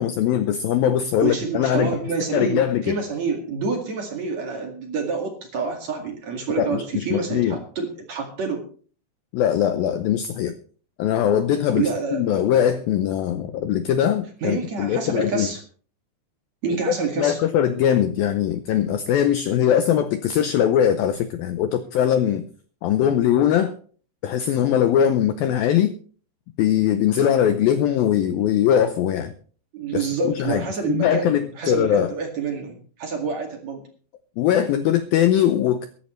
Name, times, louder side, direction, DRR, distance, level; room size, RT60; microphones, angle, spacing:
voice 1, 0.0-1.9 2.3-3.0 6.6-7.6 9.3-10.6 11.0-11.8 12.1-15.5 17.2-22.4 22.8-23.7 24.2-26.0 26.6-29.3 29.9-32.1 34.4-35.9, left 10 dB, 90° left, 2.0 m, -21 dB
voice 2, 1.2-8.7 11.7-12.2 14.4-15.6 16.6-17.4 22.0-22.1 29.7-33.8, right 5 dB, 45° right, 2.7 m, -27 dB
22.5 x 11.5 x 3.2 m
omnidirectional pair, 5.3 m